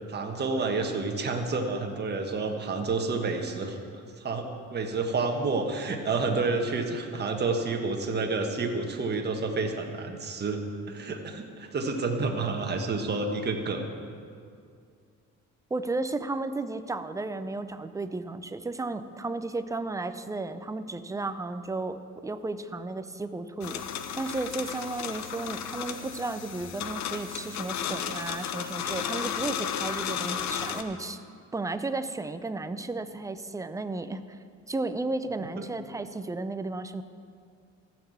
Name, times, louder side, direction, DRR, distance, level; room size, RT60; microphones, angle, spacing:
voice 1, 0.1-3.8 4.2-13.9 35.6-35.7, right 3 dB, 35° right, 3 dB, 1.4 m, -29 dB
voice 2, 15.7-23.8 24.2-31.2 31.5-34.4 34.7-37.0, right 2 dB, 10° right, 11 dB, 0.5 m, -33 dB
sound 1, 23.6-30.8, left 8 dB, 65° left, 0.8 m, -34 dB
14.0 x 6.1 x 8.0 m, 2.3 s
cardioid pair, 110°, 30 cm